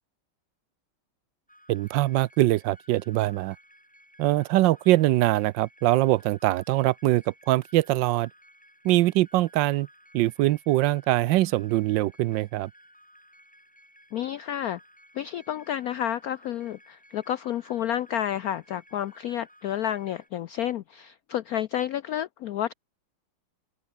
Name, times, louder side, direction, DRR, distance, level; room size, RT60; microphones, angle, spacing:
sound 1, 1.5-20.3, equal, 5° left, 7.7 m, -57 dB
voice 1, 1.7-3.6 4.2-8.3 8.8-9.9 10.1-12.7, right 16 dB, 75° right, 1.2 m, -23 dB
voice 2, 14.1-14.8 15.1-22.7, left 11 dB, 90° left, 0.8 m, -30 dB
open air
omnidirectional pair, 2.2 m